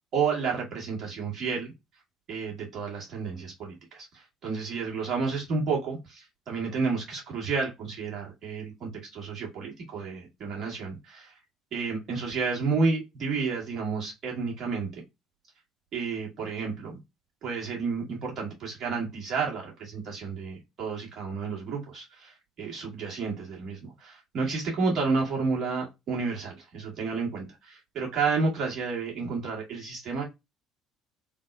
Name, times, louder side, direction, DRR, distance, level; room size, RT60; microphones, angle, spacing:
voice 1, 0.1-1.7 2.3-11.3 11.7-14.9 15.9-17.0 17.4-30.2, right 4 dB, 50° right, -2 dB, 1.7 m, -31 dB
3.4 x 2.1 x 2.4 m, 0.21 s
figure-of-eight pair, 55°, 0 cm